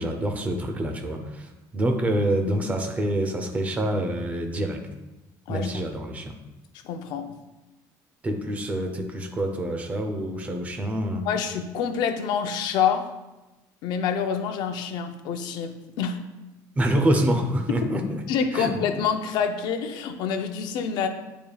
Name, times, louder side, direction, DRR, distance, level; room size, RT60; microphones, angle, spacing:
voice 1, 0.0-4.8 5.5-6.3 8.2-11.3 16.8-18.2 18.5-18.7, right 1 dB, 20° right, 4 dB, 0.7 m, -26 dB
voice 2, 5.5-5.8 6.8-7.3 11.2-13.1 13.8-16.2 18.3-21.1, left 7 dB, 65° left, 7 dB, 0.6 m, -27 dB
9.0 x 5.1 x 2.3 m, 1.0 s
cardioid pair, 165°, 8 cm